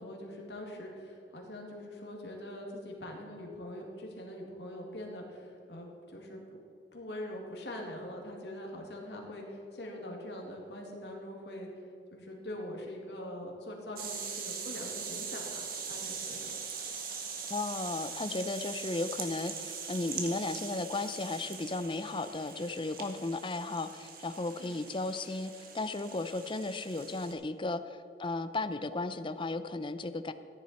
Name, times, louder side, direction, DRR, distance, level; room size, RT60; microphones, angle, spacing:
voice 1, 0.0-6.6 6.9-11.7 12.1-16.6 24.6-24.7, left 1 dB, 70° left, 0 dB, 2.3 m, -43 dB
sound 1, 14.0-27.3, right 6 dB, 55° right, 1.6 m, -42 dB
voice 2, 17.5-30.3, left 2 dB, 30° left, 11 dB, 0.5 m, -35 dB
14.5 x 10.5 x 4.4 m, 2.8 s
head